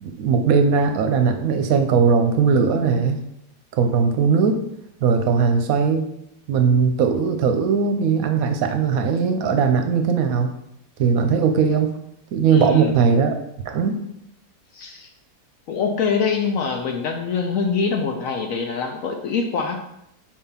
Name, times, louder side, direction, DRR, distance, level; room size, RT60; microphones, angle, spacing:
voice 1, 0.0-3.2 3.8-4.5 5.0-6.1 6.5-10.5 11.0-11.9 12.3-13.4 13.7-14.0, right 5 dB, 65° right, 5 dB, 1.0 m, -19 dB
voice 2, 12.5-13.0 14.7-15.1 15.7-19.8, left 5 dB, 65° left, 3 dB, 0.9 m, -24 dB
4.6 x 3.7 x 5.6 m, 0.80 s
omnidirectional pair, 1.8 m